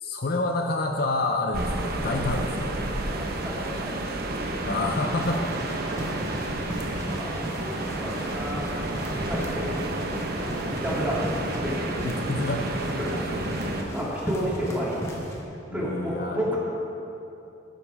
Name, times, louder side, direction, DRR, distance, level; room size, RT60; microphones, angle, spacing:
voice 1, 0.0-2.8 4.6-5.8 12.0-12.7 15.7-16.5, left 2 dB, 50° left, 3 dB, 0.6 m, -28 dB
sound 1, 1.5-13.8, right 1 dB, 50° right, 1.0 m, -31 dB
voice 2, 3.1-3.9 4.5-4.7 6.7-7.3 7.6-8.7 9.1-11.8 13.0-13.1 13.8-15.0 15.7-16.6, equal, 10° right, -7 dB, 2.7 m, -32 dB
sound 2, 4.9-15.4, equal, 15° left, 1.4 m, -37 dB
12.5 x 11.5 x 3.5 m, 2.8 s
head